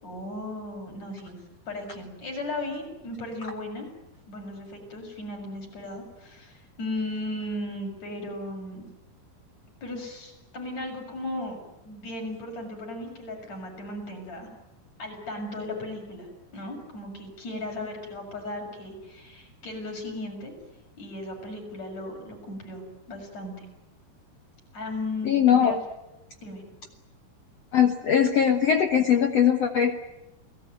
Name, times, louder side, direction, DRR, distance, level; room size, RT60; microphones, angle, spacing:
voice 1, 0.0-1.4 1.7-3.9 4.3-8.8 9.8-14.5 15.0-20.5 21.0-22.8 23.1-23.7 24.7-25.8 26.4-26.6, left 1 dB, 40° left, 1 dB, 7.8 m, -36 dB
voice 2, 25.3-25.8 27.7-29.9, left 8 dB, 90° left, 6 dB, 1.4 m, -20 dB
29.5 x 18.5 x 9.2 m, 0.97 s
omnidirectional pair, 4.8 m